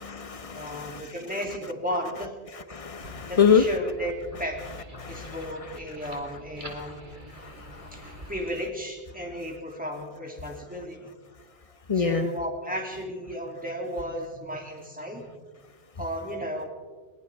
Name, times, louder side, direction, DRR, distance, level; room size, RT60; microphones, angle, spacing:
voice 1, 0.0-1.1 2.7-3.6 5.0-5.3 7.4-7.9 11.9-12.3, left 7 dB, 35° left, 11 dB, 0.9 m, -25 dB
voice 2, 0.5-2.3 3.3-4.6 5.1-7.1 7.9-11.1 11.9-15.2 16.0-16.7, equal, 10° right, 0 dB, 2.7 m, -34 dB
sound 1, 3.0-8.5, right 1 dB, 50° right, 2.2 m, -45 dB
21.0 x 20.0 x 3.5 m, 1.5 s
omnidirectional pair, 1.1 m